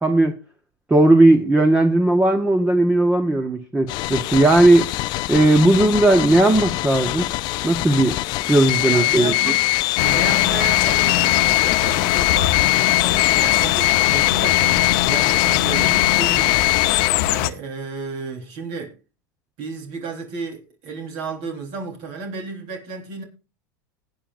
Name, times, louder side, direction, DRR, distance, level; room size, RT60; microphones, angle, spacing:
voice 1, 0.0-0.3 0.9-4.9 5.3-7.3 7.6-8.2 8.5-9.3, right 2 dB, 10° right, 1.0 m, -16 dB
sound 1, 3.9-17.1, left 20 dB, 45° left, 0.4 m, -21 dB
voice 2, 8.8-9.6 10.0-16.6 17.3-18.9 19.6-23.2, right 4 dB, 55° right, 3.7 m, -32 dB
sound 2, 10.0-17.5, left 14 dB, 65° left, 0.9 m, -23 dB
19.0 x 9.1 x 2.5 m
supercardioid pair, 140°, 10 cm